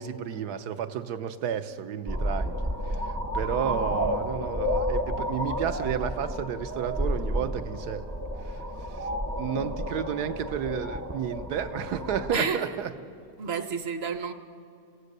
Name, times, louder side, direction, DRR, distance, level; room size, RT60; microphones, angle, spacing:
voice 1, 0.0-2.6 3.0-8.1 8.5-8.6 9.0-9.1 9.4-12.9, right 8 dB, 75° right, 1.4 m, -32 dB
sound 1, 2.1-12.4, equal, 20° right, 0.3 m, -31 dB
voice 2, 12.3-12.7 13.4-14.3, right 5 dB, 45° right, 1.0 m, -30 dB
26.5 x 17.0 x 6.7 m
omnidirectional pair, 1.8 m